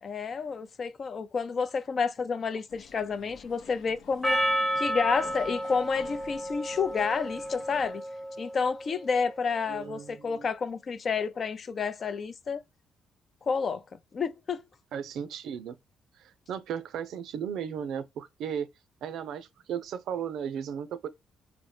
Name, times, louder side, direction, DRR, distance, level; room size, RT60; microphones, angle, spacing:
voice 1, 0.0-4.4 4.8-8.0 8.4-12.6 13.5-13.8 14.1-14.6, left 5 dB, 45° left, 0.4 m, -30 dB
Bexhill College Hallway Loop (Edited Loop), 2.7-7.9, left 6 dB, 85° left, 0.6 m, -51 dB
Percussion, 4.2-8.8, equal, 5° left, 0.8 m, -31 dB
voice 2, 9.7-10.5 14.9-15.8 16.2-18.7 19.0-21.1, right 8 dB, 80° right, 0.5 m, -35 dB
4.2 x 2.0 x 3.1 m
cardioid pair, 90°, 0 cm